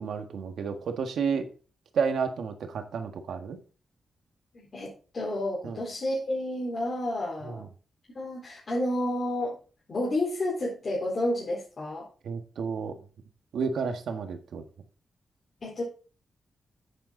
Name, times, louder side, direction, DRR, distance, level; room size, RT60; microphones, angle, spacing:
voice 1, 0.0-1.5 1.9-3.6 5.6-5.8 7.4-7.7 12.2-13.0 13.5-14.6, right 5 dB, 85° right, 6 dB, 1.6 m, -31 dB
voice 2, 4.5-7.7 8.1-9.5 9.9-12.1 15.6-15.8, left 1 dB, 45° left, -5 dB, 4.1 m, -30 dB
9.6 x 9.2 x 3.9 m, 0.37 s
wide cardioid pair, 120°, 0 cm